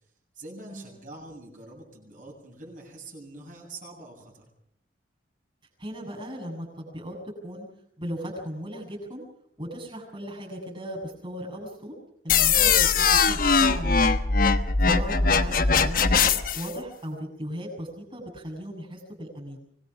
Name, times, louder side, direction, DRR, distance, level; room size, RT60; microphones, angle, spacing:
voice 1, 0.3-4.4 12.4-12.8, right 2 dB, 45° right, -1 dB, 7.5 m, -45 dB
voice 2, 5.8-7.7 8.0-9.2 9.6-12.0 12.2-14.1 14.6-19.6, equal, 25° right, -1 dB, 7.6 m, -37 dB
sound 1, 12.3-16.7, left 5 dB, 50° left, 1.2 m, -21 dB
25.0 x 20.0 x 6.1 m, 0.69 s
head